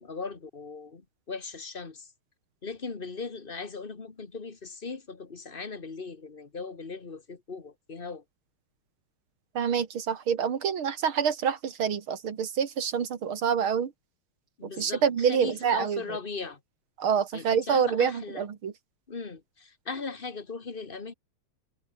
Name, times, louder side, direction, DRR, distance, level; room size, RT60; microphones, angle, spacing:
voice 1, 0.0-2.1 2.6-8.2 14.6-16.6 17.3-18.5 19.1-21.1, left 4 dB, 25° left, 1.9 m, -38 dB
voice 2, 9.5-13.9 14.6-16.0 17.0-18.7, right 7 dB, 75° right, 2.7 m, -27 dB
omnidirectional pair, 2.3 m